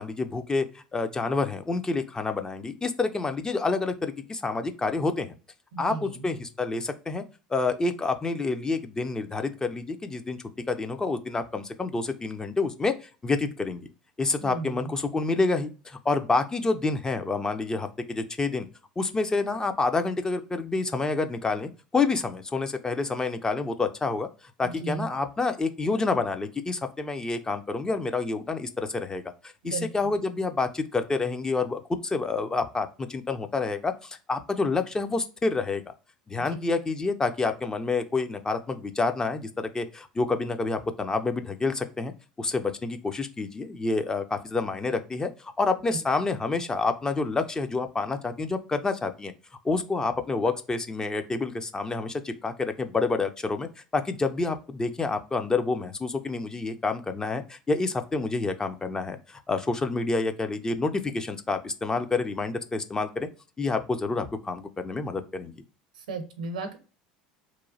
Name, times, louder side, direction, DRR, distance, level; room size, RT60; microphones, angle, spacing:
voice 1, 0.0-5.3 5.8-7.2 7.5-10.4 10.7-13.9 14.2-18.7 19.0-24.3 24.6-35.9 36.3-42.1 42.4-49.3 49.6-53.7 53.9-63.3 63.6-65.5, left 3 dB, 15° left, 7 dB, 0.4 m, -28 dB
voice 2, 5.7-6.2 14.4-14.9 24.6-25.1 29.6-29.9 66.0-66.8, right 4 dB, 70° right, 8 dB, 0.6 m, -35 dB
2.9 x 2.1 x 2.7 m, 0.34 s
figure-of-eight pair, 70°, 4 cm